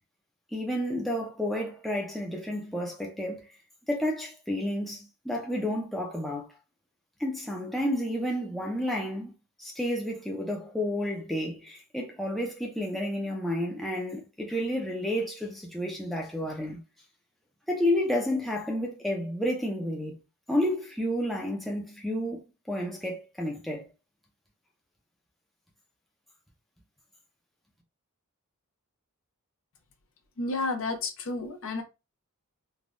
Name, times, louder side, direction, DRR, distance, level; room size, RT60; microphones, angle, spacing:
voice 1, 0.5-3.4 3.9-6.5 7.2-9.3 9.6-16.8 17.7-20.1 20.5-22.4 22.7-23.8, left 1 dB, ahead, 0.5 m, -30 dB
voice 2, 30.4-31.8, left 3 dB, 60° left, 0.7 m, -31 dB
3.4 x 2.2 x 2.5 m
head